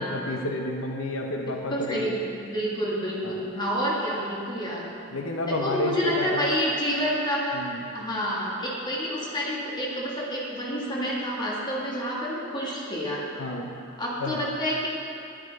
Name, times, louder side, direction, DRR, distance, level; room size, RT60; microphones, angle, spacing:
voice 1, 0.0-2.2 3.2-3.4 5.1-6.5 7.5-7.9 13.4-13.8 14.2-14.4, left 1 dB, 85° left, 2 dB, 0.9 m, -30 dB
voice 2, 1.7-4.8 5.4-7.7 7.9-13.2 14.0-14.9, equal, 20° left, -4 dB, 1.6 m, -28 dB
11.0 x 9.7 x 4.1 m, 2.6 s
head